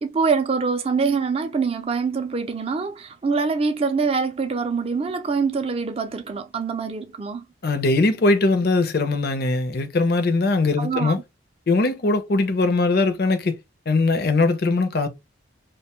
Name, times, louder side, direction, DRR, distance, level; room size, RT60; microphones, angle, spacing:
voice 1, 0.0-7.5 10.8-11.2, right 5 dB, 30° right, 0.3 m, -24 dB
voice 2, 7.6-11.2 11.7-13.5 13.9-15.1, left 3 dB, 50° left, 0.5 m, -20 dB
2.5 x 2.2 x 2.9 m
head